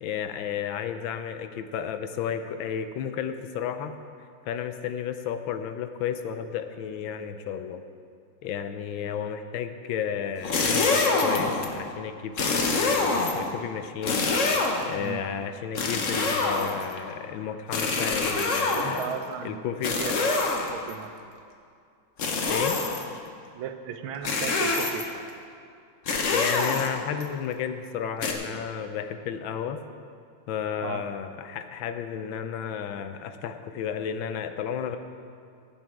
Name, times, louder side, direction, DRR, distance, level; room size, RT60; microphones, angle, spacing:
voice 1, 0.0-4.0 4.5-7.8 8.4-14.2 14.8-19.1 19.4-20.0 22.5-22.8 26.3-29.8 30.5-35.0, left 8 dB, 75° left, 9 dB, 1.4 m, -32 dB
sound 1, 10.4-11.7 12.4-13.5 14.0-15.0 15.8-17.0 17.7-19.1 19.8-20.9 22.2-23.1 24.2-25.2 26.1-27.2 28.2-28.3, left 3 dB, 45° left, 1.1 m, -25 dB
voice 2, 18.6-21.1 23.5-25.1 30.8-31.0, right 8 dB, 85° right, 7 dB, 1.6 m, -36 dB
16.0 x 7.6 x 4.6 m, 2.3 s
omnidirectional pair, 2.2 m